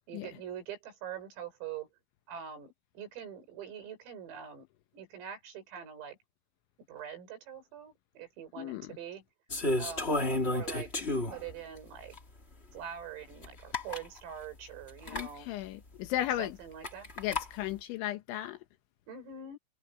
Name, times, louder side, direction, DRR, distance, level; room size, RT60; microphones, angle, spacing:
voice 1, 0.1-1.9 2.3-4.7 4.9-6.2 6.9-9.2 9.8-10.2 10.5-10.9 11.3-12.2 12.7-15.5 16.4-17.1 19.1-19.6, right 8 dB, 80° right, 8.6 m, -44 dB
voice 2, 8.6-8.9 15.1-16.6 17.2-18.6, left 13 dB, 75° left, 3.0 m, -35 dB
sound 1, 9.5-11.5 12.1-12.2 13.4-13.5 13.7-14.1 15.0-15.3 16.8-17.5, left 2 dB, 40° left, 0.8 m, -31 dB
omnidirectional pair, 6.0 m